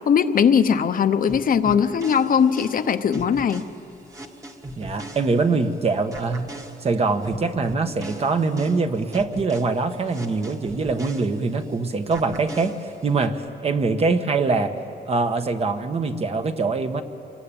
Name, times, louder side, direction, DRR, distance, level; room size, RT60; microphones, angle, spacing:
voice 1, 0.1-3.7, left 7 dB, 55° left, 9 dB, 0.9 m, -20 dB
sound 1, 1.3-5.7 6.1-11.7 12.1-13.3, right 1 dB, 20° right, 1.5 m, -39 dB
voice 2, 4.8-6.5 6.8-12.7 13.0-14.7 15.1-17.0, right 4 dB, 35° right, 7 dB, 1.3 m, -23 dB
27.5 x 22.0 x 8.9 m, 2.7 s
wide cardioid pair, 170°, 17 cm